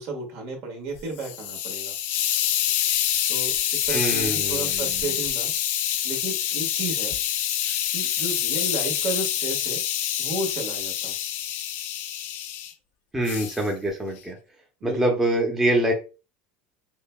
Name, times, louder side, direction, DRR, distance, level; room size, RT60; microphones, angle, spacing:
voice 1, 0.0-1.9 3.3-3.6 3.9-5.5 6.0-7.2 7.9-9.8 10.2-11.1 14.8-15.0, right 2 dB, 60° right, 1 dB, 1.6 m, -33 dB
Hiss, 1.0-12.7 13.3-13.6, left 11 dB, 55° left, 0.5 m, -26 dB
voice 2, 3.9-5.0 13.1-14.4 14.8-15.9, right 1 dB, 10° right, 0 dB, 0.8 m, -25 dB
5.5 x 2.2 x 2.2 m, 0.31 s
supercardioid pair, 130°, 5 cm